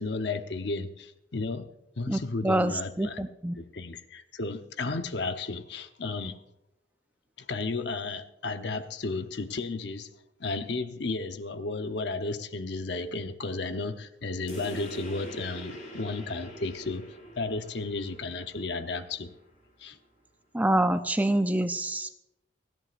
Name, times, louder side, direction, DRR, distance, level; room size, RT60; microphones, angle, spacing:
voice 1, 0.0-1.7 2.0-3.3 3.6-6.4 7.4-10.1 10.4-17.1 17.4-19.3 19.8-20.0, left 3 dB, 70° left, 0.9 m, -33 dB
voice 2, 2.1-3.6 20.5-22.1, right 1 dB, 10° right, 0.5 m, -26 dB
sound 1, 14.5-19.5, equal, 45° left, 6.0 m, -44 dB
29.5 x 11.0 x 2.5 m
head